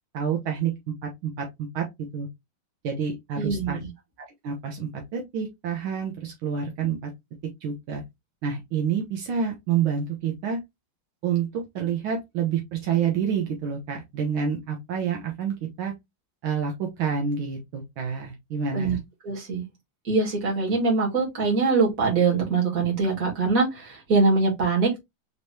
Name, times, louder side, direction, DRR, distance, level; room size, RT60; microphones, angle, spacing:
voice 1, 0.1-0.7 1.0-1.9 2.1-2.3 2.8-3.8 4.4-7.1 7.6-8.0 8.4-10.6 11.2-15.9 16.4-19.0, right 7 dB, 75° right, 1.7 m, -28 dB
voice 2, 3.4-3.9 18.7-19.0 19.2-19.6 20.0-25.0, right 4 dB, 40° right, 2.2 m, -23 dB
5.0 x 3.1 x 2.7 m
omnidirectional pair, 2.3 m